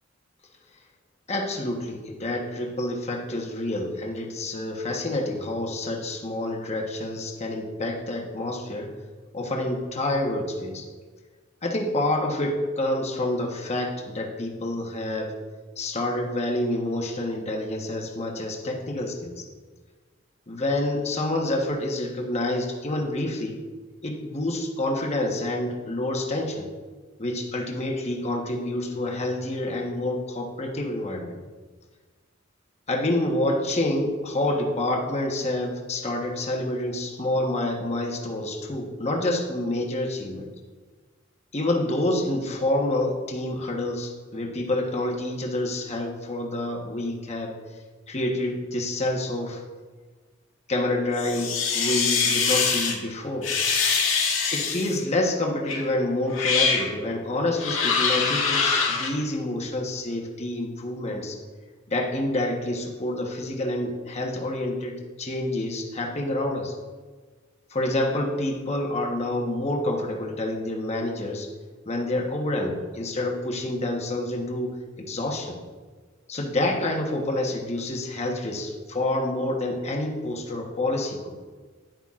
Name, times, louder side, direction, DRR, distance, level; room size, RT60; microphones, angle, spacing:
voice 1, 1.3-8.9 9.3-10.8 11.6-15.4 15.8-19.4 20.5-23.6 24.0-26.7 27.2-31.4 32.9-40.5 41.5-47.5 48.1-49.6 50.7-53.5 54.5-61.4 61.9-66.7 67.7-71.5 71.9-75.6 76.3-81.3, left 1 dB, 35° left, 0 dB, 1.2 m, -28 dB
sound 1, 51.2-52.9 53.4-55.0 55.7-55.8 56.3-56.9 57.6-59.1, left 5 dB, 90° left, 1.9 m, -24 dB
10.0 x 9.7 x 2.5 m, 1.4 s
head